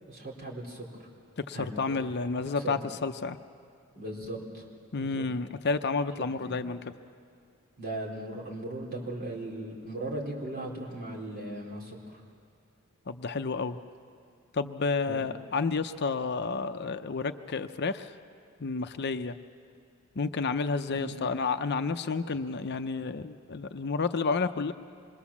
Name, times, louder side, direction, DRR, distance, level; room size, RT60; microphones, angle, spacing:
voice 1, 0.1-1.1 1.5-2.1 2.5-2.8 3.9-4.6 5.0-5.2 6.2-6.6 7.8-12.2 15.0-15.3 20.9-21.2, right 1 dB, 45° right, -2 dB, 4.2 m, -38 dB
voice 2, 1.4-3.4 4.9-6.8 13.1-13.8 14.5-18.1 18.6-19.4 20.2-24.7, left 4 dB, 50° left, 9 dB, 0.6 m, -30 dB
26.5 x 21.5 x 7.2 m, 2.3 s
head